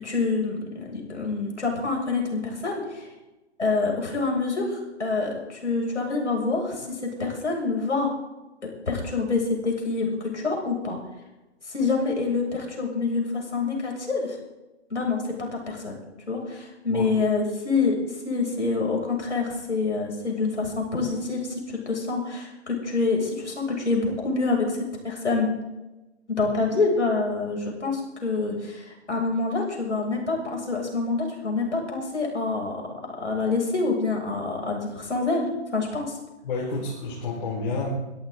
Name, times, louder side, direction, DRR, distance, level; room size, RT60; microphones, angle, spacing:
voice 1, 0.0-3.1 3.6-8.1 8.6-11.0 11.7-14.4 14.9-16.0 16.3-18.0 18.3-24.8 25.0-25.5 26.3-36.1, left 3 dB, 80° left, 0 dB, 7.0 m, -26 dB
voice 2, 36.4-37.9, left 3 dB, 50° left, -2 dB, 4.7 m, -29 dB
22.5 x 14.0 x 3.9 m, 1.1 s
figure-of-eight pair, 125°, 35 cm